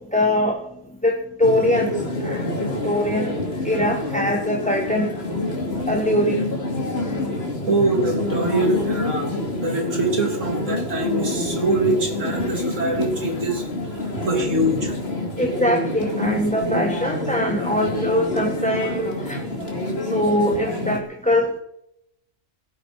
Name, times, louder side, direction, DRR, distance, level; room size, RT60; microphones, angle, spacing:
voice 1, 0.1-0.6 1.0-3.4 3.6-5.1 5.9-6.4 15.3-19.4 20.0-21.6, left 1 dB, 5° left, 3 dB, 1.2 m, -22 dB
sound 1, 1.4-21.0, left 2 dB, 55° left, 2.8 m, -27 dB
voice 2, 7.6-9.3 9.6-13.6 13.9-14.9, right 2 dB, 90° right, 2 dB, 3.3 m, -24 dB
17.0 x 13.0 x 4.8 m, 0.77 s
omnidirectional pair, 1.3 m